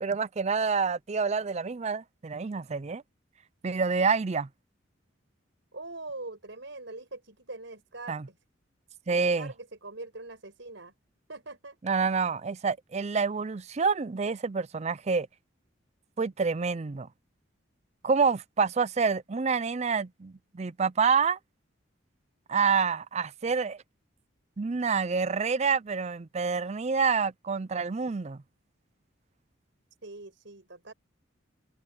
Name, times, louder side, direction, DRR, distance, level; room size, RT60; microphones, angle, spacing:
voice 1, 0.0-3.0 3.6-4.5 8.1-8.2 9.1-9.5 11.8-15.3 16.2-17.1 18.0-21.4 22.5-23.8 24.6-28.4, right 5 dB, 35° right, 0.5 m, -27 dB
voice 2, 5.7-8.4 9.1-10.9 11.3-11.8 30.0-30.9, right 2 dB, 65° right, 5.5 m, -43 dB
head